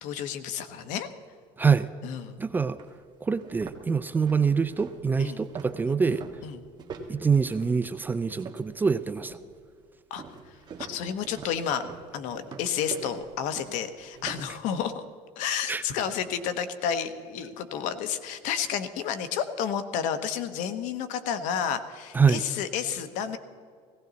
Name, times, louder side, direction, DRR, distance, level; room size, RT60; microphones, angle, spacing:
voice 1, 0.0-1.1 2.0-2.4 5.2-5.4 6.4-6.6 10.1-10.2 10.8-11.8 12.1-15.0 15.4-23.4, left 8 dB, 70° left, 10 dB, 1.1 m, -31 dB
voice 2, 1.6-1.9 2.4-2.8 3.2-6.2 7.1-9.4 15.7-15.8 22.1-22.4, right 5 dB, 15° right, 12 dB, 0.4 m, -25 dB
sound 1, 2.2-2.3 2.8-2.9 3.3-8.8 9.2-9.6 10.2-14.6, right 5 dB, 35° right, 1.6 m, -43 dB
18.0 x 16.5 x 4.1 m, 2.1 s
cardioid pair, 145°, 13 cm